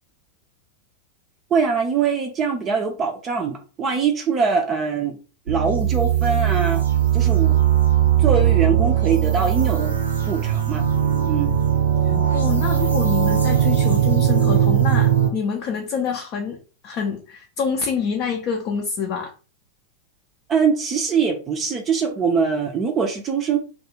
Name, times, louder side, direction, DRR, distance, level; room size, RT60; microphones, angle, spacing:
voice 1, 1.5-5.2 5.5-6.8 7.1-7.6 8.2-9.9 10.3-10.8 11.3-11.6 20.5-23.6, right 5 dB, 25° right, 3 dB, 0.4 m, -22 dB
sound 1, 5.5-15.3, right 10 dB, 75° right, 0.6 m, -19 dB
voice 2, 12.3-16.6 16.8-19.3, left 6 dB, 40° left, 1 dB, 0.4 m, -26 dB
2.3 x 2.3 x 2.8 m, 0.35 s
figure-of-eight pair, 90°, 0 cm